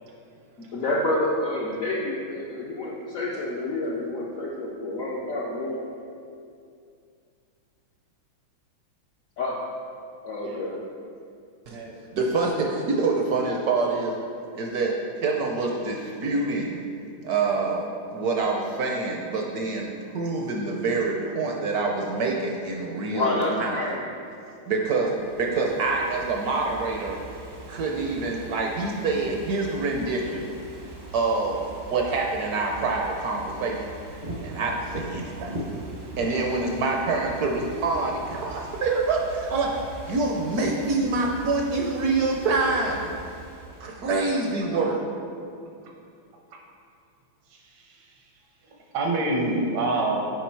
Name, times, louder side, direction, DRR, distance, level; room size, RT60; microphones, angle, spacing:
voice 1, 0.6-5.8 9.4-9.6 10.2-10.7 23.1-24.0, left 2 dB, 70° left, -3 dB, 0.8 m, -28 dB
voice 2, 10.4-10.8 11.7-12.0 45.8-46.0 46.5-46.6 47.5-50.2, right 2 dB, 85° right, 1 dB, 1.8 m, -29 dB
voice 3, 12.1-14.1 14.5-16.8 17.2-19.9 20.1-23.8 24.7-27.2 27.7-30.5 31.1-33.9 34.4-35.6 36.2-39.8 40.1-43.1 43.8-45.0, right 3 dB, 70° right, 0 dB, 0.9 m, -26 dB
Ocean / Fireworks, 24.8-44.1, right 2 dB, 45° right, 0.5 m, -41 dB
7.1 x 4.9 x 4.5 m, 2.4 s
omnidirectional pair, 2.2 m